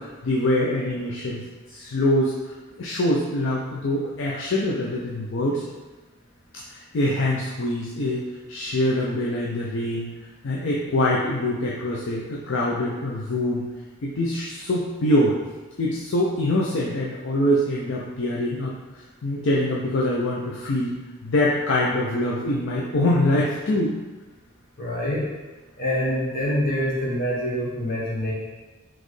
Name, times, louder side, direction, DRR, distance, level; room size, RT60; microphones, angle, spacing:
voice 1, 0.0-1.4 1.7-5.6 6.5-10.1 10.4-13.6 14.0-15.4 15.8-18.8 19.2-20.9 21.2-23.9, left 1 dB, 55° left, -4 dB, 0.4 m, -24 dB
voice 2, 24.8-25.3 25.8-28.3, equal, 40° left, -5 dB, 1.0 m, -25 dB
4.1 x 3.0 x 3.2 m, 1.2 s
head